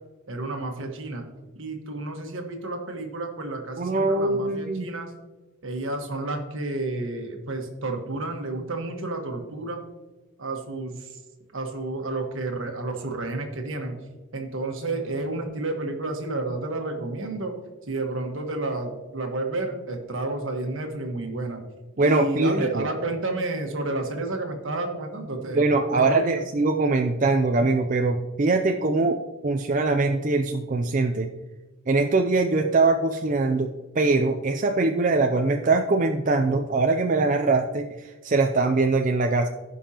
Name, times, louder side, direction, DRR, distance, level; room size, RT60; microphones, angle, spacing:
voice 1, 0.3-1.3 1.6-5.1 5.6-9.8 10.4-11.2 11.5-14.0 14.3-17.5 17.9-21.6 22.0-25.6 25.9-26.2, right 2 dB, 70° right, 3 dB, 1.4 m, -31 dB
voice 2, 3.8-4.9 22.0-22.8 25.5-29.2 29.4-31.3 31.9-39.5, right 3 dB, 40° right, 4 dB, 0.4 m, -22 dB
16.0 x 5.4 x 2.9 m, 1.2 s
head